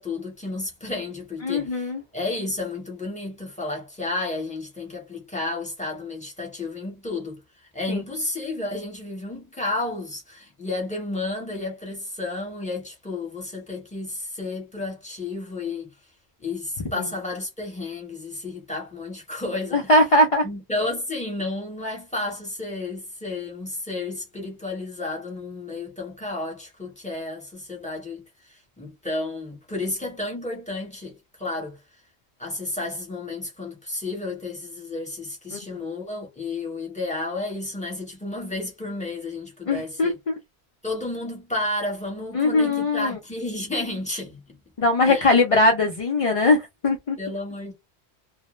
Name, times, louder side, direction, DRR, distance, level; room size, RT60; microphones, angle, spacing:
voice 1, 0.0-7.4 7.7-15.9 16.4-19.9 20.4-31.8 32.4-40.2 40.8-44.4 45.1-45.3 47.2-47.7, left 2 dB, 5° left, 0.9 m, -32 dB
voice 2, 1.4-2.0 7.9-8.0 19.7-20.5 35.5-35.6 39.7-40.3 42.3-43.2 44.8-47.2, left 2 dB, 55° left, 0.3 m, -20 dB
2.1 x 2.0 x 3.0 m
omnidirectional pair, 1.1 m